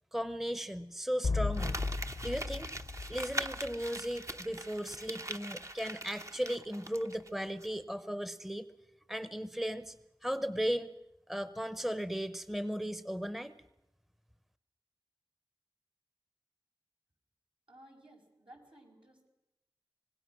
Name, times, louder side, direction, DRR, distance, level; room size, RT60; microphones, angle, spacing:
voice 1, 0.1-1.8 2.2-2.7 3.1-8.7 9.1-9.9 10.2-10.9 11.3-13.5, equal, 5° right, 13 dB, 0.8 m, -36 dB
sound 1, 1.2-4.1, left 3 dB, 65° left, 0.7 m, -35 dB
Crumpling crinkling, 1.5-7.3 7.6-7.7, right 1 dB, 35° right, 0.9 m, -42 dB
voice 2, 17.7-19.3, right 1 dB, 70° right, -1 dB, 5.4 m, -57 dB
25.5 x 19.0 x 6.2 m, 0.90 s
wide cardioid pair, 40°, 9 cm